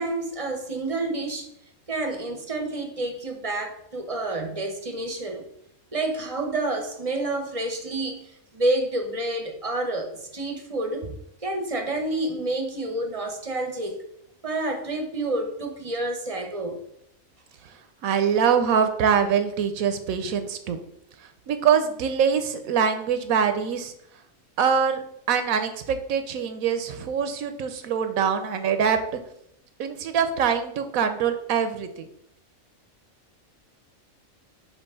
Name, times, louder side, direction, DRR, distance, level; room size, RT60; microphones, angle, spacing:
voice 1, 0.0-1.5 1.9-5.5 5.9-8.3 8.5-11.1 11.4-14.0 14.4-16.8, right 2 dB, 35° right, 4 dB, 0.7 m, -29 dB
voice 2, 18.0-20.8 21.5-23.9 24.6-25.0 25.3-29.0 29.8-32.0, right 7 dB, 85° right, 9 dB, 1.1 m, -24 dB
6.4 x 2.9 x 5.5 m, 0.75 s
omnidirectional pair, 1.4 m